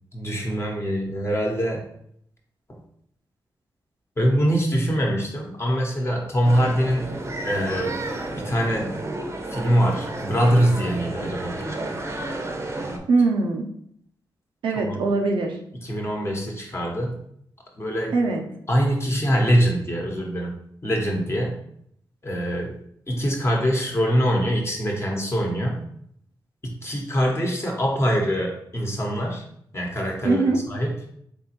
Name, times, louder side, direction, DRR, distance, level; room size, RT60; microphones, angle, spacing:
voice 1, 0.1-1.9 2.7-2.8 4.2-7.1 7.4-8.0 8.3-8.9 9.5-11.6 12.8-13.0 14.7-15.0 15.8-17.2 17.7-18.2 18.7-20.5 20.8-21.6 22.2-22.8 23.1-25.8 26.6-29.4 29.7-30.9, equal, 30° left, 0 dB, 1.0 m, -23 dB
sound 1, 6.4-13.0, right 2 dB, 35° right, 0.6 m, -31 dB
voice 2, 13.1-13.7 14.6-15.5 18.1-18.4 30.2-30.6, right 3 dB, 90° right, 2 dB, 0.5 m, -21 dB
3.5 x 3.1 x 2.9 m, 0.69 s
cardioid pair, 60°, 8 cm